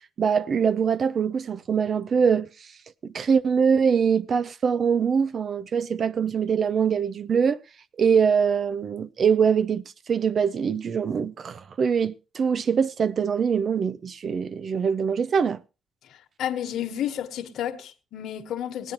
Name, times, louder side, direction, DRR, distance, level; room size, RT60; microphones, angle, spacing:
voice 1, 0.2-2.5 3.0-7.6 8.0-15.6, right 6 dB, 50° right, 0.5 m, -23 dB
voice 2, 16.1-18.9, left 10 dB, 75° left, 1.2 m, -31 dB
20.5 x 9.0 x 3.0 m
cardioid pair, 90°, 0 cm